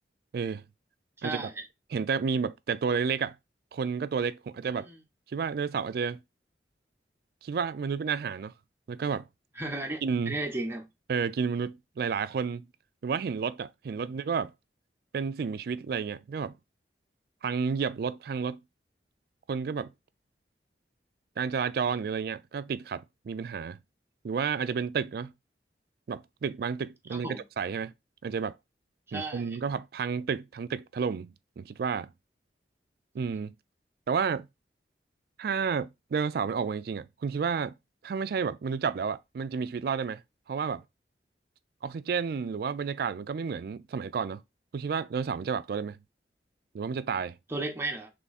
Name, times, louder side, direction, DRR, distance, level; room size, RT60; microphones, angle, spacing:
voice 1, 1.2-1.6 4.7-5.0 9.6-10.9 27.1-27.4 29.1-29.6 47.5-48.1, right 2 dB, 15° right, 0.7 m, -35 dB
voice 2, 1.9-3.4 3.7-4.9 5.3-6.2 7.4-8.5 8.9-9.3 10.0-10.4 11.1-12.7 13.0-14.5 15.1-16.6 17.4-18.6 19.5-19.9 21.4-23.8 24.2-25.3 26.1-27.9 28.2-28.6 29.1-32.1 33.1-33.5 34.1-34.5 35.4-37.7 38.0-40.2 40.5-40.8 41.8-44.4 44.7-46.0 46.7-47.4, right 6 dB, 60° right, 0.3 m, -31 dB
3.6 x 3.1 x 4.1 m
head